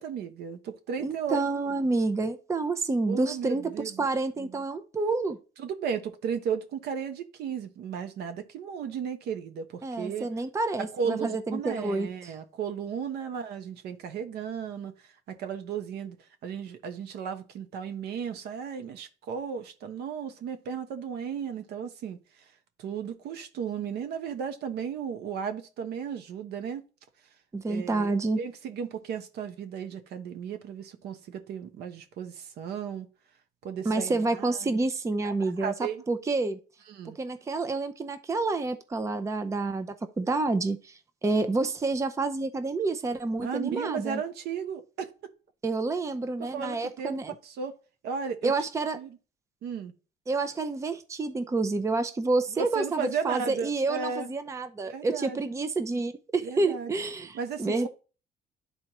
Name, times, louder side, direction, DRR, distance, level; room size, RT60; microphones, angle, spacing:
voice 1, 0.0-1.7 3.1-4.1 4.4-4.6 5.6-10.3 10.8-14.9 15.3-16.2 16.4-22.2 22.8-26.8 27.7-33.1 33.6-34.8 35.2-35.3 35.6-36.0 36.9-37.2 43.4-45.1 46.4-47.2 47.4-47.7 48.0-48.5 48.9-49.2 49.6-49.9 52.6-54.3 54.9-55.6 56.4-56.9 57.3-57.9, right 7 dB, 75° right, 1.0 m, -35 dB
voice 2, 1.0-3.7 4.0-5.4 9.8-12.3 27.5-28.4 33.8-35.7 36.1-36.6 37.2-44.2 45.6-47.3 48.4-49.0 50.3-57.9, right 3 dB, 15° right, 0.6 m, -29 dB
11.0 x 4.2 x 3.0 m
cardioid pair, 110°, 17 cm